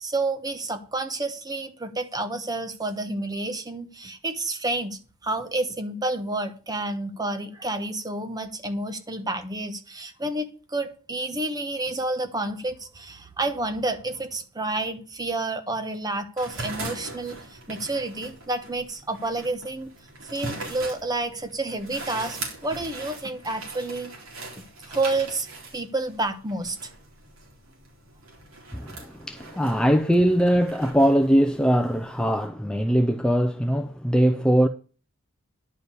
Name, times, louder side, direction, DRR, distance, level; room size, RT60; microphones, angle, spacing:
voice 1, 0.0-19.9 20.3-24.1 24.6-25.5 25.7-26.9, right 2 dB, 20° right, 1.0 m, -30 dB
sound 1, 16.4-32.5, right 2 dB, 80° right, 3.7 m, -41 dB
voice 2, 28.7-34.7, equal, 5° left, 0.5 m, -21 dB
10.5 x 5.1 x 8.2 m
head